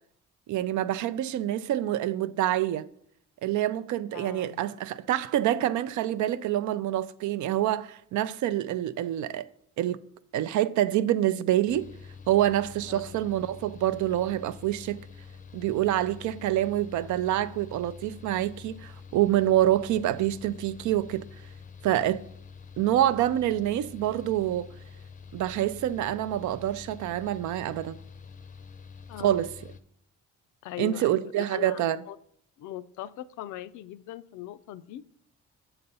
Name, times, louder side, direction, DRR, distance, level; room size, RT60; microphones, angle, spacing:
voice 1, 0.5-2.9 3.4-9.5 9.8-10.0 10.3-11.9 12.3-15.0 15.5-21.2 21.8-22.2 22.8-24.7 25.3-28.0 29.2-29.5 30.8-32.0, right 13 dB, 75° right, 0.5 m, -26 dB
voice 2, 4.1-4.7 12.9-13.2 29.1-29.5 30.6-31.8 32.1-32.2 32.6-35.0, left 13 dB, 75° left, 0.4 m, -40 dB
Mechanical fan, 11.7-29.8, left 5 dB, 25° left, 0.5 m, -47 dB
6.8 x 4.0 x 5.5 m
cardioid pair, 90°, 30 cm